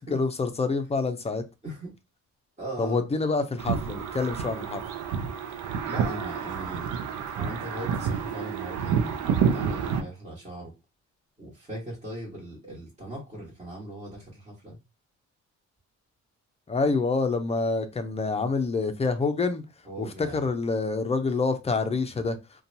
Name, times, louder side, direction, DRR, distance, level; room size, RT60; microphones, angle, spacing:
voice 1, 0.1-1.4 2.8-4.8 16.7-19.6 20.0-22.4, left 3 dB, 20° left, 8 dB, 0.5 m, -27 dB
voice 2, 1.6-1.9 2.6-3.0 5.8-6.9 7.3-10.7 11.4-14.8 19.8-20.4, right 1 dB, 25° right, -5 dB, 1.3 m, -39 dB
sound 1, 3.6-10.0, right 7 dB, 85° right, 0.5 m, -29 dB
2.7 x 2.2 x 2.6 m, 0.25 s
cardioid pair, 90°, 30 cm